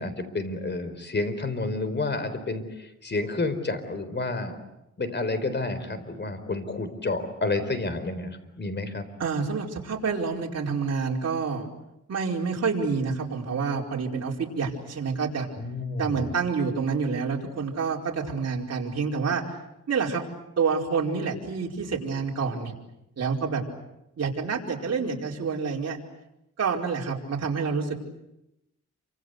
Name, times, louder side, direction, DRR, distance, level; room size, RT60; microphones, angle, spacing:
voice 1, 0.0-4.6 5.0-9.0 15.6-16.3, left 3 dB, 35° left, 11 dB, 4.3 m, -30 dB
voice 2, 9.2-11.7 12.1-15.5 16.0-19.4 19.9-20.2 20.6-22.7 23.2-23.6 24.2-26.0 26.6-27.9, right 5 dB, 55° right, -1 dB, 5.0 m, -28 dB
28.0 x 26.0 x 8.1 m, 0.89 s
cardioid pair, 100°, 30 cm